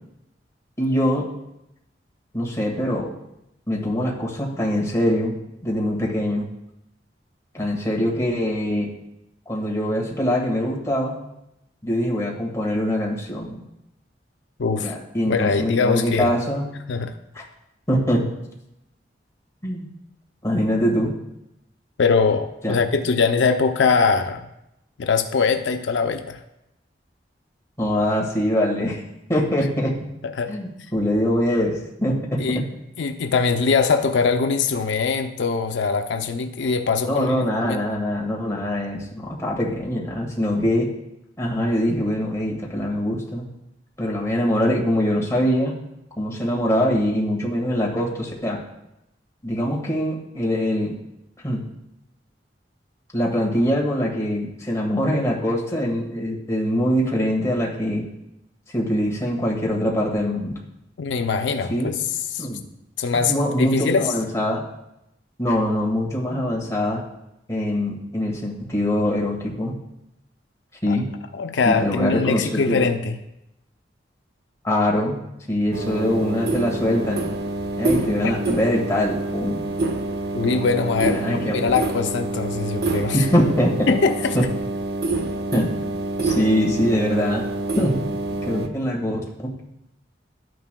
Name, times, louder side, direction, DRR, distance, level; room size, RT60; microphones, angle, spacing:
voice 1, 0.8-1.3 2.3-3.1 3.7-5.3 5.6-6.5 7.5-8.9 9.5-11.1 11.8-13.6 14.8-16.7 17.3-17.4 17.9-18.3 19.6-19.9 20.4-21.2 22.6-22.8 27.8-29.0 29.3-30.0 30.5-32.6 37.1-40.9 41.4-43.4 44.0-45.7 46.2-48.6 49.4-50.9 51.4-51.7 53.1-58.1 58.7-60.5 61.7-61.9 62.4-62.6 63.3-64.6 65.4-67.0 67.5-69.7 70.8-71.1 71.6-72.9 74.6-75.2 75.5-77.3 77.8-79.6 81.0-81.5 83.1-83.9 84.3-84.4 85.5-85.7 86.2-87.5 87.7-88.0 88.4-89.2, equal, 15° left, -2 dB, 1.6 m, -23 dB
voice 2, 14.6-14.9 15.3-16.3 16.9-17.2 22.0-24.5 25.0-26.4 30.2-30.5 32.4-32.6 33.0-37.8 61.0-61.9 62.3-62.5 63.0-64.1 70.9-71.0 71.3-73.2 78.2-78.3 80.3-83.2 83.9-84.4, left 5 dB, 85° left, 6 dB, 0.5 m, -22 dB
sound 1, 75.7-88.7, right 2 dB, 60° right, 0.7 m, -27 dB
12.0 x 9.3 x 2.2 m, 0.86 s
head